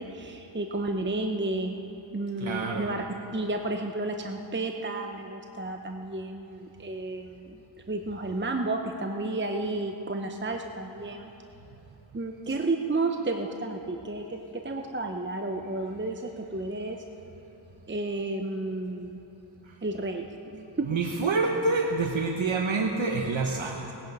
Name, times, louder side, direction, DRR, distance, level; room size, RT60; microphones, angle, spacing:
voice 1, 0.0-1.7 2.1-3.1 3.3-7.6 7.9-11.3 12.1-17.0 17.9-19.2 19.8-20.2 20.5-20.9, right 2 dB, 25° right, 4 dB, 0.8 m, -32 dB
voice 2, 2.4-2.9 20.8-23.9, right 3 dB, 80° right, 2 dB, 1.0 m, -27 dB
19.5 x 10.0 x 5.4 m, 3.0 s
wide cardioid pair, 50°, 46 cm